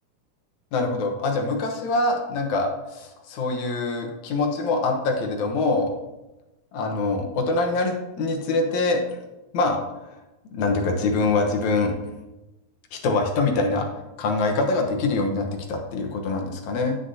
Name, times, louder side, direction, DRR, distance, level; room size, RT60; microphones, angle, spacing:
voice 1, 0.7-5.9 6.7-9.2 9.5-10.2 10.5-11.9 12.9-13.9 14.2-17.0, left 3 dB, 75° left, 3 dB, 2.5 m, -24 dB
10.0 x 9.5 x 2.7 m, 1.0 s
omnidirectional pair, 3.4 m